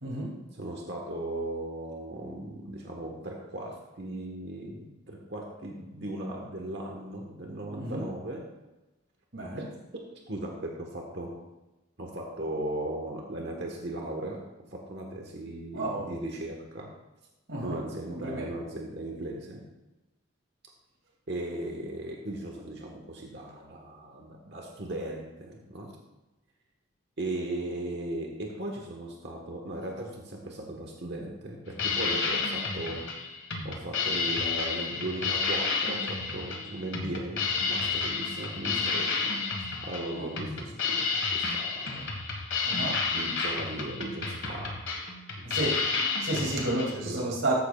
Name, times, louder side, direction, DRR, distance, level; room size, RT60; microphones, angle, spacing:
voice 1, 0.0-0.3 7.7-8.0 9.3-9.6 15.7-16.1 17.5-17.8 18.2-18.5 38.7-38.9 40.1-40.3 42.6-43.0 45.4-45.8 46.2-47.5, right 2 dB, 70° right, -2 dB, 2.6 m, -31 dB
voice 2, 0.5-8.5 9.6-9.7 9.9-11.4 12.0-14.5 14.7-17.0 17.6-19.7 21.3-26.0 27.2-33.1 33.6-39.3 39.8-42.0 43.1-44.9 45.3-45.7 46.9-47.3, right 1 dB, 55° right, 0 dB, 1.3 m, -37 dB
sound 1, 31.7-46.9, left 4 dB, 60° left, 1.6 m, -31 dB
14.0 x 9.5 x 2.4 m, 1.0 s
head